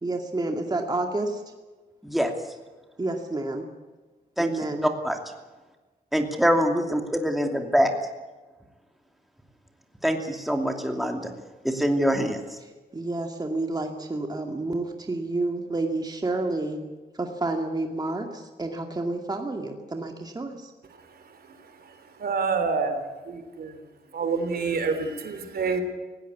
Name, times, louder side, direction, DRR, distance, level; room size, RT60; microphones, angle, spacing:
voice 1, 0.0-1.4 3.0-3.7 4.4-4.8 12.6-16.8 17.1-20.7, right 2 dB, 25° right, 3 dB, 2.3 m, -30 dB
voice 2, 4.8-5.1 6.1-7.9 10.0-11.3 11.6-12.4, equal, ahead, 4 dB, 2.7 m, -24 dB
voice 3, 22.2-23.0 23.3-23.8 24.1-25.8, right 5 dB, 70° right, 8 dB, 3.3 m, -27 dB
19.5 x 17.0 x 8.4 m, 1.2 s
cardioid pair, 95°, 17 cm